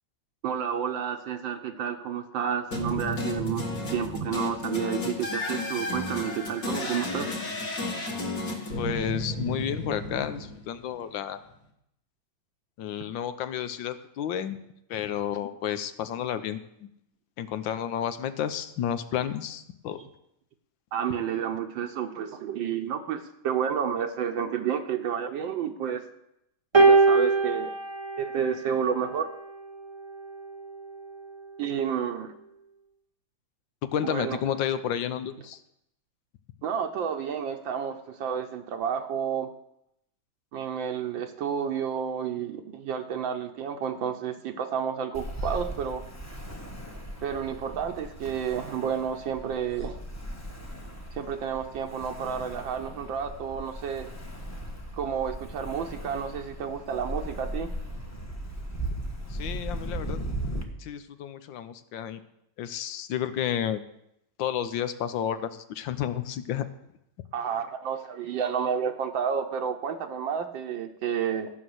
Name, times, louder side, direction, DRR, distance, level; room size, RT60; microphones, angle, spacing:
voice 1, 0.4-3.7 3.9-7.3 20.9-26.0 26.8-27.7 28.2-29.3 31.6-32.3 34.0-34.4 36.6-39.5 40.5-46.0 47.2-50.0 51.1-54.1 55.0-57.7 67.3-71.5, right 8 dB, 80° right, 4 dB, 1.6 m, -30 dB
sound 1, 2.7-10.9, left 1 dB, 45° left, 2.5 m, -32 dB
voice 2, 8.8-11.4 12.8-14.6 14.9-16.9 17.4-20.0 33.8-35.6 59.3-60.2 60.8-62.2 62.6-63.8 64.4-66.7, left 9 dB, 80° left, 11 dB, 1.5 m, -31 dB
sound 2, 26.7-29.2 30.2-30.4, right 3 dB, 20° right, 0.8 m, -22 dB
Ocean, 45.1-60.6, right 1 dB, 10° left, 0.9 m, -37 dB
14.0 x 6.0 x 7.8 m, 0.80 s
omnidirectional pair, 2.1 m